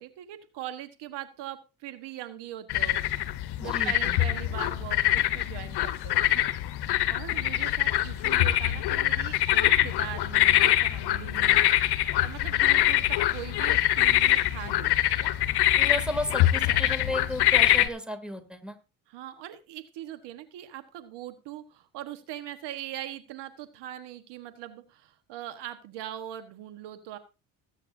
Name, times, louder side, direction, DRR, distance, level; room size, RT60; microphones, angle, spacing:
voice 1, 0.0-3.0 3.6-6.2 7.1-11.6 12.2-14.9 19.1-27.2, right 12 dB, 80° right, 9 dB, 1.4 m, -41 dB
sound 1, 2.7-17.9, left 14 dB, 65° left, 1.0 m, -24 dB
voice 2, 3.6-4.2 15.8-18.8, left 1 dB, ahead, 7 dB, 2.7 m, -33 dB
19.0 x 9.0 x 2.7 m, 0.29 s
supercardioid pair, 80°, 41 cm